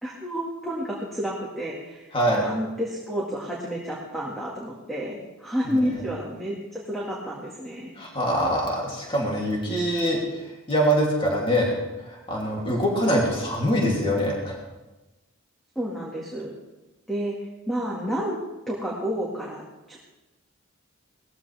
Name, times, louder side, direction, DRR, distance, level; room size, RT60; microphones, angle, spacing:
voice 1, 0.0-2.1 2.3-7.9 15.8-16.5 17.1-17.3 17.7-18.4 18.7-20.0, equal, ahead, -4 dB, 2.0 m, -30 dB
voice 2, 2.1-2.5 5.6-6.0 8.0-10.2 10.7-11.7 12.0-14.6, equal, 25° left, -2 dB, 2.9 m, -24 dB
19.5 x 14.5 x 3.5 m, 1.1 s
head